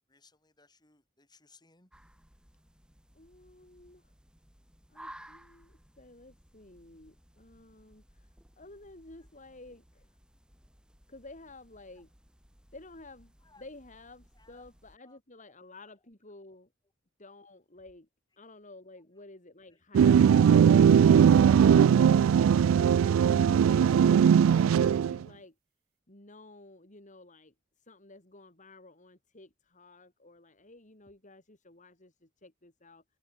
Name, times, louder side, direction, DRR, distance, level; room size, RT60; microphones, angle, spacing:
voice 1, 0.1-1.9 9.3-9.4 13.4-13.6 14.3-14.7 15.0-15.2 15.5-15.6 15.9-16.0 19.7-19.8, left 3 dB, 20° left, 7.9 m, -62 dB
sound 1, 1.9-15.0, right 1 dB, 5° right, 3.0 m, -57 dB
voice 2, 3.1-4.1 4.9-10.2 11.1-12.1 12.7-16.7 17.2-18.1 18.4-21.3 21.5-25.6 26.1-33.0, left 2 dB, 40° left, 3.8 m, -52 dB
sound 2, 19.9-25.2, right 8 dB, 90° right, 0.3 m, -20 dB
head